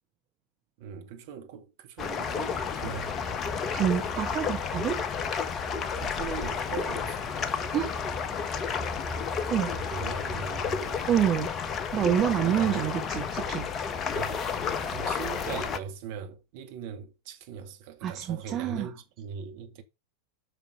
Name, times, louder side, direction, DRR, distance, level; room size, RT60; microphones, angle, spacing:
voice 1, 0.8-3.1 6.0-7.3 9.7-11.1 12.4-13.0 14.1-19.8, right 7 dB, 50° right, 2.1 m, -40 dB
sound 1, 2.0-15.8, left 6 dB, 25° left, 1.2 m, -31 dB
voice 2, 3.7-5.0 7.7-7.9 9.5-9.7 11.1-11.5 11.9-13.7 18.0-18.9, right 10 dB, 30° right, 1.1 m, -27 dB
6.7 x 6.0 x 6.6 m
figure-of-eight pair, 90°, 0 cm